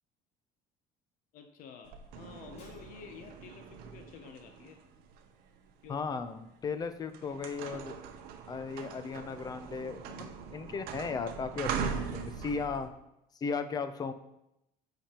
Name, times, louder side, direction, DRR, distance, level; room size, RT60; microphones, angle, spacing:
voice 1, 1.3-4.8 5.8-6.1, left 6 dB, 60° left, 6 dB, 0.7 m, -50 dB
sound 1, 1.9-6.0 6.6-6.8 7.1-12.9, right 6 dB, 70° right, 0.7 m, -41 dB
Shatter, 2.6-3.4, left 2 dB, 40° left, 2.1 m, -62 dB
voice 2, 5.9-7.9 8.5-12.9 13.4-14.1, left 5 dB, 25° left, 10 dB, 0.4 m, -36 dB
8.4 x 5.1 x 2.9 m, 0.85 s
cardioid pair, 145°, 16 cm